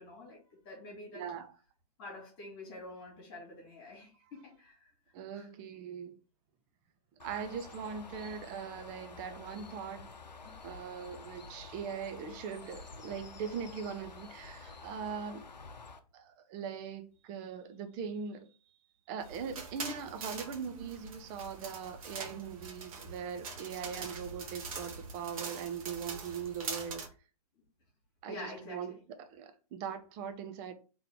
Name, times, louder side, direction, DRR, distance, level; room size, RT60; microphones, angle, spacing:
voice 1, 0.0-1.3 2.0-4.8 5.3-5.5 10.4-10.6 28.3-29.0, left 2 dB, 35° left, 1.9 m, -47 dB
voice 2, 1.1-1.5 5.1-6.2 7.2-10.1 10.6-15.5 16.1-18.6 19.1-27.0 28.2-30.7, right 6 dB, 20° right, 0.4 m, -41 dB
Bird, 7.2-16.0, left 4 dB, 85° left, 0.7 m, -50 dB
sound 1, 19.2-27.1, right 4 dB, 55° right, 1.0 m, -43 dB
3.7 x 3.0 x 3.4 m
figure-of-eight pair, 130°, 21 cm